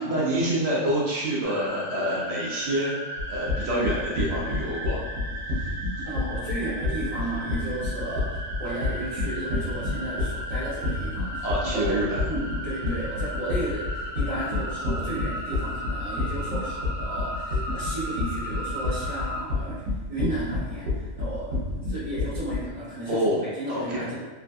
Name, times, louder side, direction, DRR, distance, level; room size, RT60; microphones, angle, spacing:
voice 1, 0.0-3.0 3.3-5.0 5.6-5.7 5.9-6.0 11.4-12.2 23.1-23.4 23.7-24.0, right 1 dB, 60° right, -6 dB, 0.9 m, -27 dB
sound 1, 1.4-19.4, equal, 25° left, 1.5 m, -36 dB
sound 2, 3.2-22.7, left 2 dB, 90° right, 1.1 m, -29 dB
voice 2, 6.0-12.0 12.3-19.8 20.1-24.2, right 1 dB, 45° right, -11 dB, 1.6 m, -34 dB
3.4 x 2.4 x 2.2 m, 1.3 s
omnidirectional pair, 1.3 m